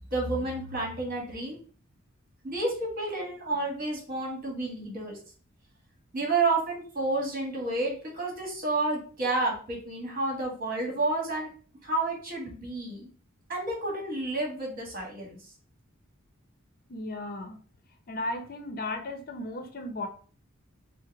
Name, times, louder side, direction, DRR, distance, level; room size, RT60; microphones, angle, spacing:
voice 1, 0.1-1.6 2.4-5.2 6.1-11.5 11.8-13.1 13.5-15.4, right 2 dB, 45° right, 0 dB, 1.6 m, -30 dB
voice 2, 16.9-17.6 18.1-20.1, left 2 dB, 45° left, 5 dB, 0.6 m, -35 dB
4.7 x 2.1 x 4.6 m, 0.42 s
head